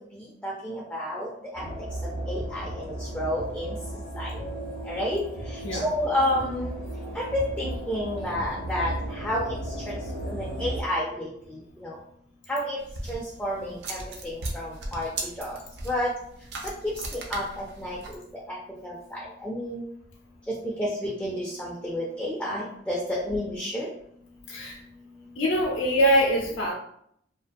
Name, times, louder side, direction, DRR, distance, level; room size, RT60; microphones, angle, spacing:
voice 1, 0.4-1.3 1.5-1.6 2.3-2.7 3.1-3.8 4.2-4.3 4.9-5.2 5.7-6.7 7.2-7.3 7.6-8.9 9.2-9.4 9.9-10.0 10.3-11.3 11.8-11.9 12.5-12.8 13.1-14.0 14.3-15.1 15.4-15.6 15.9-16.1 16.8-17.4 17.8-18.0 18.8-18.9 19.4-19.8 20.8-23.9, left 1 dB, 5° left, -6 dB, 0.3 m, -29 dB
sound 1, 1.5-10.8, right 1 dB, 80° right, 1.0 m, -35 dB
sound 2, 12.8-18.2, right 2 dB, 60° right, 0.4 m, -38 dB
voice 2, 25.4-26.7, equal, 85° left, -1 dB, 0.5 m, -23 dB
2.3 x 2.2 x 2.5 m, 0.69 s
head